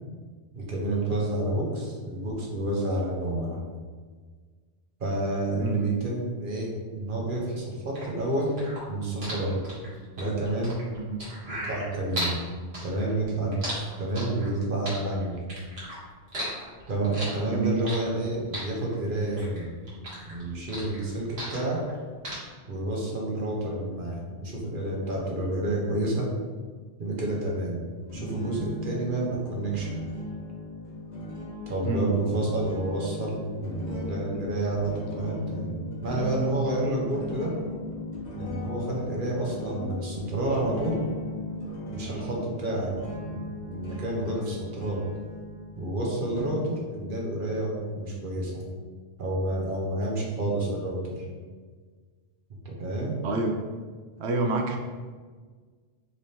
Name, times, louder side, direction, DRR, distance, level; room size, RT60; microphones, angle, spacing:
voice 1, 0.5-3.6 5.0-8.5 8.9-9.7 10.2-10.8 11.5-12.4 12.8-15.4 16.9-19.7 20.3-21.8 22.7-26.3 27.0-27.8 28.1-30.0 31.7-37.5 38.4-41.0 41.9-43.0 43.3-45.0 45.8-48.6 49.2-51.2 52.6-53.2, right 1 dB, 55° right, -2 dB, 1.0 m, -29 dB
voice 2, 5.6-5.9 7.2-7.6 10.9-11.2 17.5-17.8 31.9-32.0 53.2-53.6 54.2-54.8, right 3 dB, 90° right, 3 dB, 0.9 m, -28 dB
sound 1, 7.9-12.4 12.7-14.5 14.9-16.0 16.3-18.2 18.5-19.6 19.9-21.9 22.2-22.3, equal, 75° right, 1.5 m, -35 dB
sound 2, 28.1-46.5, left 1 dB, 45° left, 1.0 m, -37 dB
4.0 x 3.2 x 2.8 m, 1.5 s
omnidirectional pair, 1.1 m